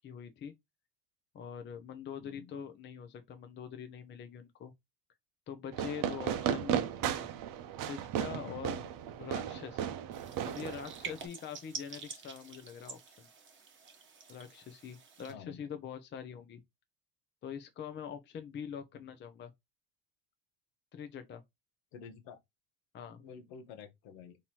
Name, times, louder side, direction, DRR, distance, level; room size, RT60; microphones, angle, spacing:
voice 1, 0.0-0.5 1.3-4.7 5.5-6.8 7.8-8.8 9.2-10.0 10.4-13.3 14.3-16.6 17.4-19.5 20.9-21.4 22.9-23.2, left 7 dB, 25° left, 0.6 m, -44 dB
voice 2, 2.2-2.6 6.9-7.3 8.4-8.9 15.3-15.7 18.9-19.0 21.9-22.4 23.2-24.4, left 7 dB, 70° left, 1.1 m, -50 dB
Fireworks, 5.7-11.3, right 9 dB, 50° right, 0.7 m, -35 dB
sound 1, 10.1-15.3, right 5 dB, 25° right, 1.0 m, -48 dB
3.8 x 2.9 x 2.9 m
supercardioid pair, 110°, 44 cm